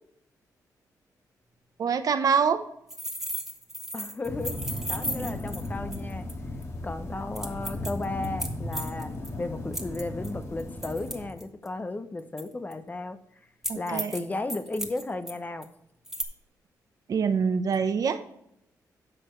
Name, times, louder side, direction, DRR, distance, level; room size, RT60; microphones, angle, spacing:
voice 1, 1.8-2.6 13.7-14.2 17.1-18.2, right 6 dB, 60° right, 9 dB, 0.9 m, -25 dB
sound 1, 2.9-6.3 6.6-6.7 7.4-9.3 9.7-11.7 12.4-12.7 13.6-14.2 14.5-15.3 15.6-15.7 16.1-16.2, equal, 5° right, 1.5 m, -35 dB
voice 2, 3.9-4.6 4.9-6.3 6.8-13.2 13.8-15.7, left 2 dB, 25° left, 10 dB, 0.8 m, -34 dB
sound 2, 4.2-11.3, left 1 dB, 40° left, 2.0 m, -36 dB
11.0 x 6.8 x 3.2 m, 0.77 s
cardioid pair, 90°, 7 cm